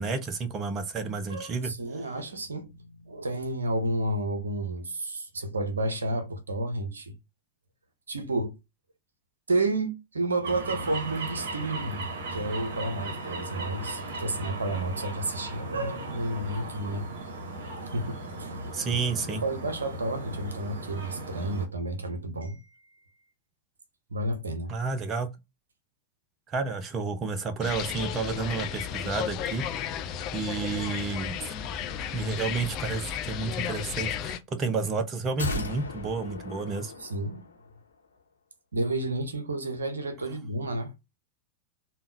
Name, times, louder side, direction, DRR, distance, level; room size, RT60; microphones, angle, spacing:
voice 1, 0.0-1.7 18.7-19.4 24.7-25.3 26.5-29.7 30.3-31.5 32.1-36.9, right 4 dB, 25° right, 0.6 m, -31 dB
voice 2, 1.3-7.2 8.1-8.6 9.5-17.1 17.8-18.7 19.3-23.1 24.1-24.8 37.0-37.5 38.7-40.9, right 2 dB, 75° right, 0.6 m, -31 dB
sound 1, 10.4-21.7, right 2 dB, 55° right, 1.0 m, -37 dB
sound 2, 27.6-34.4, left 9 dB, 35° left, 0.4 m, -34 dB
sound 3, 35.4-37.7 38.0-38.1, left 3 dB, 75° left, 0.9 m, -36 dB
3.5 x 2.2 x 2.6 m
figure-of-eight pair, 90°, 0 cm